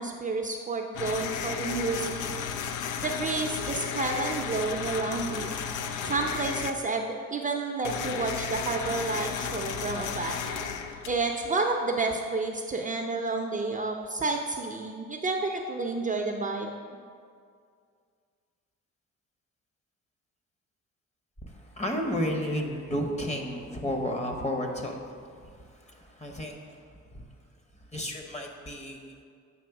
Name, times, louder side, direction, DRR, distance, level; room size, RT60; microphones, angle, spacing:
voice 1, 0.0-2.3 3.0-5.6 6.0-10.4 11.1-16.7, right 3 dB, 25° right, 2 dB, 0.5 m, -30 dB
sound 1, 0.9-6.7 7.8-11.5, left 7 dB, 85° left, 0.5 m, -34 dB
voice 2, 21.4-27.2 27.7-29.2, equal, 20° left, 2 dB, 0.9 m, -33 dB
7.8 x 3.1 x 5.9 m, 2.2 s
cardioid pair, 90°, 30 cm